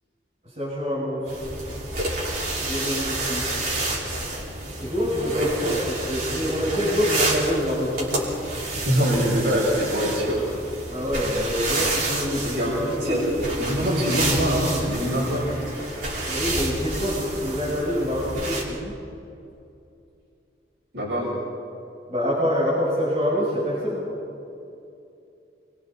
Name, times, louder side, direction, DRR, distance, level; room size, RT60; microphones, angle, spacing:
voice 1, 0.4-1.5 2.6-4.0 4.8-8.3 10.9-13.5 16.3-18.9 22.1-24.1, equal, 40° right, -9 dB, 6.7 m, -26 dB
sound 1, 1.3-18.6, right 2 dB, 55° right, 5.8 m, -29 dB
voice 2, 8.9-10.5 12.4-13.2 13.6-15.4 20.9-21.3, equal, 80° right, -7 dB, 7.0 m, -23 dB
28.0 x 25.0 x 4.6 m, 2.7 s
head